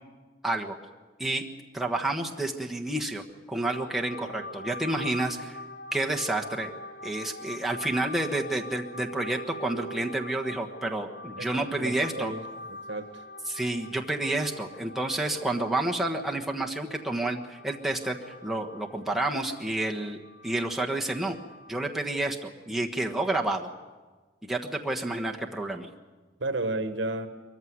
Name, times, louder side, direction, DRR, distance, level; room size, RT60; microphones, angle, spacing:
voice 1, 0.4-0.7 1.2-1.4 1.7-3.2 3.5-5.6 5.9-6.7 7.0-12.3 13.5-20.2 20.4-21.4 21.7-23.7 24.4-25.9, right 2 dB, ahead, 0 dB, 1.3 m, -29 dB
sound 1, 3.6-21.7, left 1 dB, 65° left, 2.1 m, -44 dB
voice 2, 11.8-12.4 12.7-13.2 26.4-27.3, right 2 dB, 70° right, 9 dB, 1.5 m, -32 dB
22.5 x 15.0 x 9.5 m, 1.3 s
head